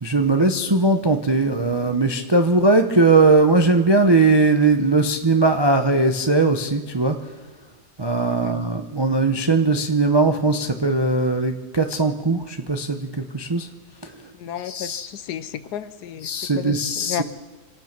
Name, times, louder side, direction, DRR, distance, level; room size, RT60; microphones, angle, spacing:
voice 1, 0.0-7.3 8.0-13.7 14.0-14.3 14.6-15.1 16.2-17.2, right 3 dB, 35° right, 6 dB, 0.4 m, -19 dB
voice 2, 14.3-16.3 16.6-17.2, left 10 dB, 70° left, 14 dB, 1.3 m, -33 dB
26.5 x 9.3 x 5.9 m, 1.3 s
omnidirectional pair, 1.8 m